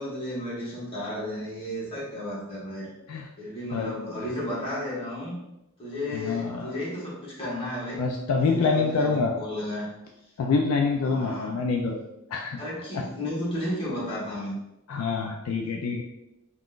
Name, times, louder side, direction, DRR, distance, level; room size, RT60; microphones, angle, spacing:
voice 1, 0.0-2.9 3.4-5.4 5.8-8.0 8.5-9.9 11.0-11.6 12.6-14.5, left 1 dB, 25° left, -7 dB, 1.1 m, -33 dB
voice 2, 6.1-6.7 8.0-9.3 10.4-12.0 12.3-12.6 12.9-13.0 14.9-16.0, left 4 dB, 70° left, 1 dB, 0.3 m, -26 dB
3.6 x 2.4 x 2.3 m, 0.90 s
head